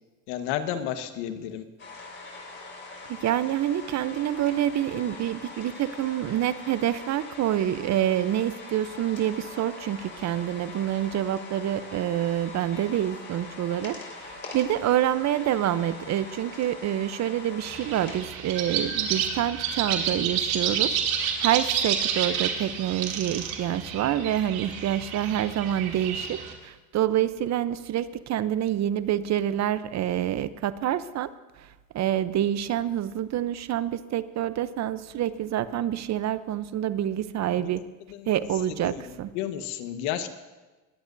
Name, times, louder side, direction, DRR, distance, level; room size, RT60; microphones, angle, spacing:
voice 1, 0.3-1.6 37.6-37.8 38.1-38.4 38.8-39.0 39.3-40.3, left 10 dB, 70° left, 8 dB, 1.5 m, -32 dB
sound 1, 1.8-18.2, left 3 dB, 25° left, 5.0 m, -43 dB
voice 2, 3.1-31.3 31.6-31.7 31.9-37.8 38.3-39.3, right 11 dB, 40° right, 14 dB, 0.8 m, -27 dB
sound 2, 17.6-26.5, right 8 dB, 80° right, 2.8 m, -29 dB
21.5 x 17.5 x 2.7 m, 1.2 s
supercardioid pair, 90°, 42 cm